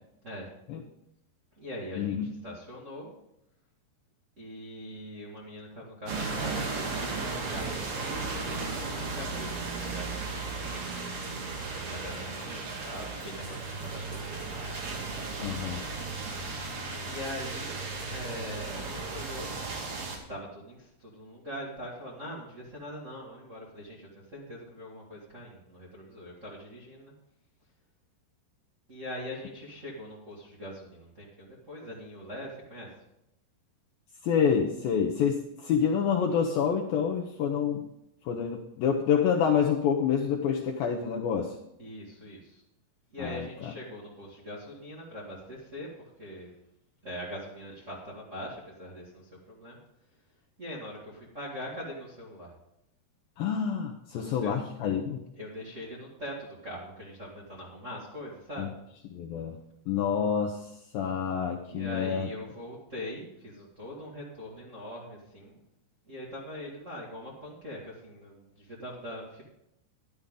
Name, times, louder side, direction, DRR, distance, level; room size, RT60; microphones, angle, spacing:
voice 1, 1.6-3.1 4.4-10.6 11.6-14.4 17.0-17.8 18.1-19.6 20.3-27.1 28.9-32.9 41.8-42.6 43.1-46.5 47.0-49.8 50.6-52.5 54.1-54.6 55.3-58.7 61.6-65.5 66.0-69.4, equal, 30° right, -5 dB, 1.5 m, -42 dB
sound 1, 6.1-20.2, right 3 dB, 55° right, 3.4 m, -35 dB
voice 2, 15.4-15.9 34.2-37.9 38.2-41.6 43.2-43.5 53.4-55.3 58.6-58.7 59.1-59.6 59.9-62.3, left 7 dB, 75° left, 2 dB, 2.2 m, -28 dB
12.5 x 11.5 x 3.8 m, 0.80 s
omnidirectional pair, 5.0 m